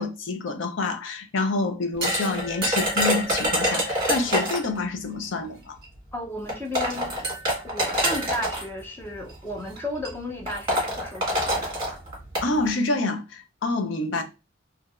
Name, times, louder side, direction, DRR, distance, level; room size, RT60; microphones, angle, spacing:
voice 1, 0.0-5.8 12.4-14.2, left 3 dB, 70° left, 0.5 m, -27 dB
sound 1, 2.0-4.8 5.8-5.9 6.5-8.6 9.5-9.8 10.0-10.1 10.5-12.5, equal, 25° right, 1.4 m, -25 dB
voice 2, 6.1-7.1 7.6-11.7, left 1 dB, 10° left, 0.5 m, -34 dB
2.9 x 2.6 x 2.4 m
head